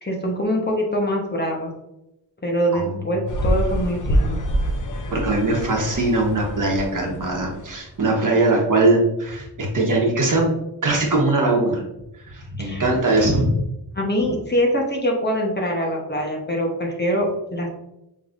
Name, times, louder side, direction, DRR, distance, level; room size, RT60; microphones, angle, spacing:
voice 1, 0.0-1.7 2.4-4.4 12.6-12.8 13.9-17.7, equal, 25° left, 0 dB, 1.0 m, -24 dB
sound 1, 3.3-8.0, equal, 50° left, 0.7 m, -26 dB
voice 2, 5.1-10.5 10.8-11.8 12.3-13.5, right 2 dB, 50° right, -1 dB, 1.2 m, -21 dB
6.0 x 3.1 x 2.6 m, 0.89 s
wide cardioid pair, 105°, 40 cm